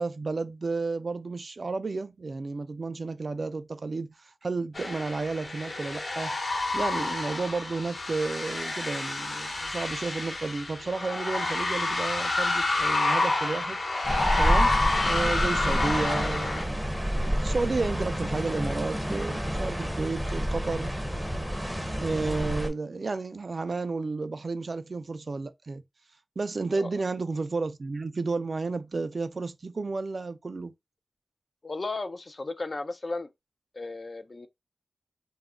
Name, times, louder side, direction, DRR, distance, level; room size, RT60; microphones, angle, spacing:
voice 1, 0.0-6.3 6.7-13.8 14.4-14.7 15.1-16.8 17.2-20.9 22.0-25.8 26.4-30.7, right 3 dB, 55° right, 0.3 m, -32 dB
sound 1, 4.7-16.6, left 2 dB, 60° left, 1.0 m, -28 dB
sound 2, 14.0-22.7, equal, 5° right, 0.6 m, -29 dB
voice 2, 31.6-33.3 33.7-34.5, left 3 dB, 45° left, 0.4 m, -35 dB
2.3 x 2.1 x 3.5 m
wide cardioid pair, 70°, 0 cm